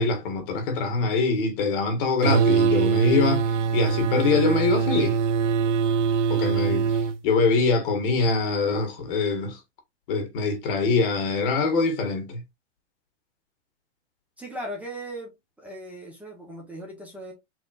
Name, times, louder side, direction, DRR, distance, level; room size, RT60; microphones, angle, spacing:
voice 1, 0.0-5.2 6.3-9.6 10.1-12.4, left 4 dB, 50° left, 1.7 m, -24 dB
sound 1, 2.2-7.2, right 6 dB, 85° right, 0.8 m, -23 dB
voice 2, 14.4-15.3 15.6-17.3, right 1 dB, 5° right, 1.2 m, -37 dB
4.5 x 3.5 x 2.5 m
hypercardioid pair, 150°, 35 cm